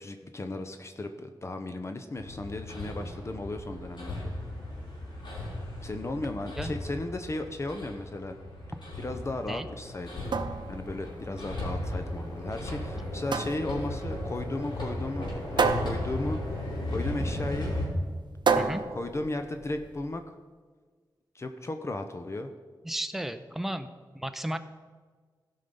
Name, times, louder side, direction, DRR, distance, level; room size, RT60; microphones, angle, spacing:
voice 1, 0.0-4.3 5.8-8.4 9.0-16.4 16.9-17.8 18.5-20.2 21.3-22.5, left 2 dB, 35° left, 7 dB, 0.7 m, -35 dB
Hammer, 2.2-17.8, left 1 dB, 70° left, 3.9 m, -36 dB
sound 1, 10.0-20.0, right 5 dB, 70° right, 0.7 m, -32 dB
voice 2, 22.8-23.9 24.1-24.6, right 1 dB, 5° right, 8 dB, 0.5 m, -33 dB
15.5 x 5.6 x 5.3 m, 1.5 s
wide cardioid pair, 115°, 8 cm